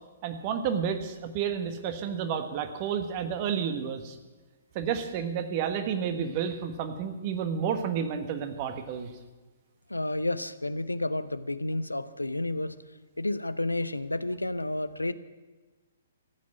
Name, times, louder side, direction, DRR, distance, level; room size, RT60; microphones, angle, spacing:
voice 1, 0.2-4.2 4.7-9.1, right 7 dB, 35° right, 7 dB, 1.5 m, -31 dB
voice 2, 9.9-12.8 13.2-15.1, left 2 dB, 80° left, 14 dB, 0.7 m, -31 dB
15.0 x 8.7 x 8.7 m, 1.3 s
figure-of-eight pair, 120°, 0 cm